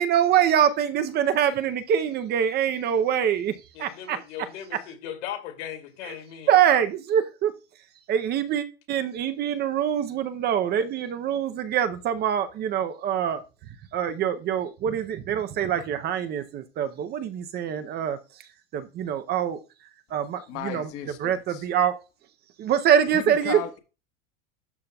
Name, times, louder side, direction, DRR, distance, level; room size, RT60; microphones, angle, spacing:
voice 1, 0.0-3.5 3.8-4.2 6.0-6.1 6.5-7.5 8.1-13.4 13.9-18.2 18.7-19.6 20.1-20.9 21.2-21.9 22.6-23.6, right 9 dB, 30° right, 0.6 m, -24 dB
voice 2, 3.7-6.5, left 10 dB, 85° left, 2.6 m, -38 dB
voice 3, 20.5-21.7 23.1-23.8, left 11 dB, 45° left, 1.3 m, -36 dB
11.5 x 5.5 x 2.3 m
supercardioid pair, 155°, 34 cm